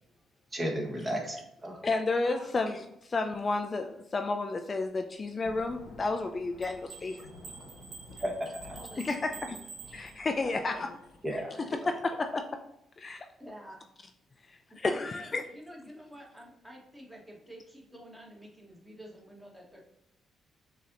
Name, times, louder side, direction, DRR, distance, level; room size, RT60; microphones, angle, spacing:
voice 1, 0.5-1.8 8.2-8.8 11.2-11.9, equal, 25° right, 0 dB, 1.2 m, -34 dB
voice 2, 1.8-7.2 9.0-9.6 9.9-10.9 11.3-11.4 11.9-12.4 13.0-13.3 14.8-15.4, left 3 dB, 35° left, 6 dB, 0.3 m, -31 dB
Thunder / Rain, 5.4-11.4, left 2 dB, 85° left, 1.0 m, -52 dB
sound 1, 6.6-10.6, right 5 dB, 60° right, 0.8 m, -49 dB
voice 3, 8.7-9.6 10.4-11.0 13.4-13.8 14.8-19.9, equal, 5° right, -2 dB, 1.3 m, -49 dB
6.3 x 2.8 x 2.6 m, 0.79 s
cardioid pair, 90°, 0 cm